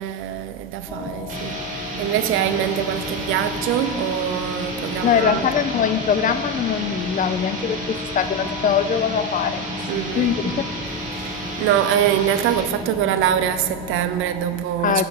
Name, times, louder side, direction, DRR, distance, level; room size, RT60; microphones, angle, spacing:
voice 1, 0.0-5.5 9.9-10.4 11.1-15.0, right 10 dB, 85° right, 0.4 m, -24 dB
sound 1, 0.9-14.5, left 4 dB, ahead, 0.7 m, -34 dB
sound 2, 1.3-12.7, right 2 dB, 40° right, 2.0 m, -32 dB
voice 2, 5.0-9.9 10.2-10.6 14.8-15.0, left 8 dB, 45° left, 0.4 m, -22 dB
9.5 x 5.3 x 4.6 m
cardioid pair, 90°, 20 cm